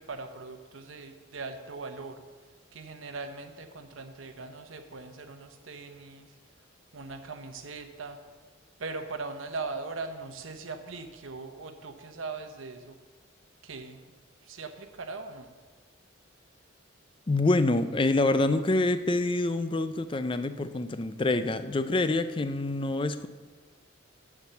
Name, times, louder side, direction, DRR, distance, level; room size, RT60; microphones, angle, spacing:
voice 1, 0.0-2.2 2.7-6.3 6.9-8.2 8.8-13.0 13.6-14.0 14.4-15.5, right 3 dB, 80° right, 6 dB, 1.0 m, -40 dB
voice 2, 17.3-23.3, left 2 dB, 25° left, 11 dB, 0.4 m, -26 dB
8.1 x 7.3 x 6.9 m, 1.4 s
head